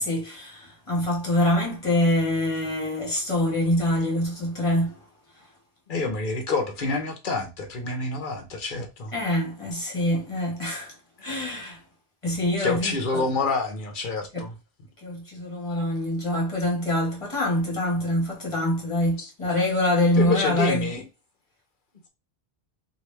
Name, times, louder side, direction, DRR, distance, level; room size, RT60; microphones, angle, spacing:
voice 1, 0.0-5.0 9.1-10.9 11.2-11.8 12.2-13.2 14.3-14.4 15.0-20.9, left 1 dB, 30° left, 1.3 m, -25 dB
voice 2, 5.9-9.1 11.3-11.4 12.6-14.5 19.2-19.3 20.2-21.0, left 3 dB, 55° left, 0.9 m, -28 dB
3.0 x 2.6 x 3.2 m
omnidirectional pair, 1.1 m